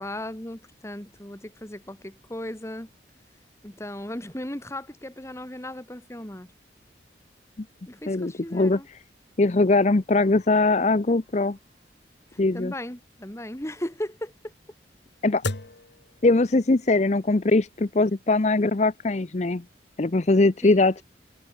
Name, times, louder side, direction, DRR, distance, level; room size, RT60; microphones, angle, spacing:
voice 1, 0.0-2.9 3.6-6.5 7.9-8.9 12.5-14.5 20.6-21.0, left 1 dB, 15° left, 1.7 m, -36 dB
voice 2, 8.1-8.8 9.4-11.6 12.4-12.7 15.2-15.4 16.2-19.6 20.0-21.0, left 2 dB, 40° left, 0.7 m, -21 dB
sound 1, 10.2-16.9, left 2 dB, 75° left, 1.9 m, -40 dB
head